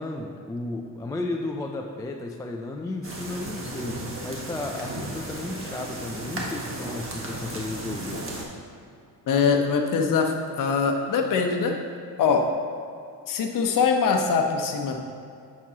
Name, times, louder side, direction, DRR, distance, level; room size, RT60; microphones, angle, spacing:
voice 1, 0.0-8.2, left 2 dB, 10° left, 2 dB, 0.3 m, -33 dB
sound 1, 3.0-8.4, right 1 dB, 35° right, 1.3 m, -35 dB
voice 2, 9.3-11.7 12.2-12.5 13.3-15.0, left 5 dB, 55° left, 3 dB, 0.9 m, -23 dB
8.3 x 6.1 x 2.8 m, 2.5 s
cardioid pair, 115°, 39 cm